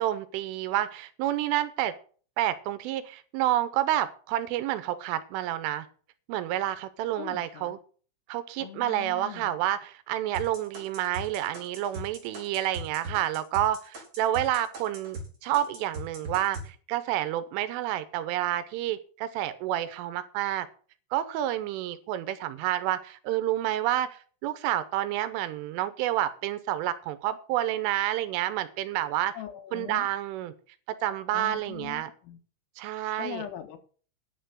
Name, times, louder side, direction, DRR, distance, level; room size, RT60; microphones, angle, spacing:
voice 1, 0.0-1.9 2.4-5.9 6.3-7.8 8.3-20.7 21.1-29.4 29.7-30.5 30.9-32.1 32.8-33.4, right 13 dB, 80° right, 13 dB, 3.2 m, -29 dB
voice 2, 7.2-7.8 8.6-9.6 29.3-30.1 31.3-32.4 33.2-33.8, left 12 dB, 80° left, 7 dB, 3.8 m, -41 dB
sound 1, 10.3-15.3 15.5-16.7, right 1 dB, 30° right, 5.0 m, -39 dB
10.5 x 6.8 x 7.7 m, 0.41 s
omnidirectional pair, 5.9 m